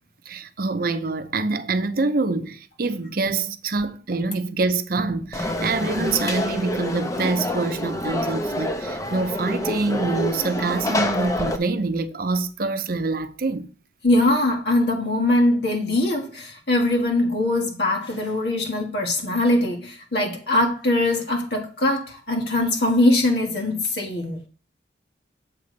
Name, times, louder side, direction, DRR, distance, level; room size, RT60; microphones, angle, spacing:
voice 1, 0.3-13.7, right 3 dB, 55° right, 0.7 m, -25 dB
Conversation / Crowd, 5.3-11.6, left 1 dB, 20° left, 0.8 m, -27 dB
voice 2, 14.0-24.4, left 1 dB, 70° left, 1.8 m, -22 dB
7.4 x 4.1 x 6.7 m
head